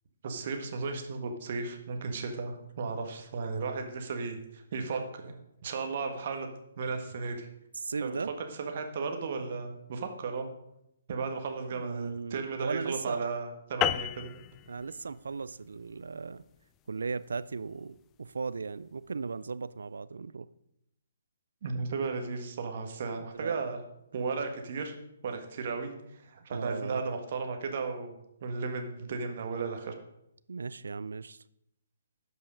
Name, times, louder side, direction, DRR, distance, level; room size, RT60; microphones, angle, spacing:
voice 1, 0.2-5.3 5.6-6.5 6.8-7.5 8.0-8.1 8.6-10.5 11.1-14.3 21.6-23.8 24.1-24.9 25.2-28.1 28.4-29.9, right 4 dB, 50° right, 5 dB, 1.6 m, -35 dB
voice 2, 7.7-8.3 11.7-13.3 14.7-16.4 16.9-20.5 23.3-23.6 26.5-27.0 30.5-31.4, right 4 dB, 70° right, 17 dB, 0.4 m, -37 dB
sound 1, 13.8-18.5, left 13 dB, 20° left, 0.3 m, -35 dB
12.0 x 5.5 x 5.1 m, 0.80 s
figure-of-eight pair, 135°, 0 cm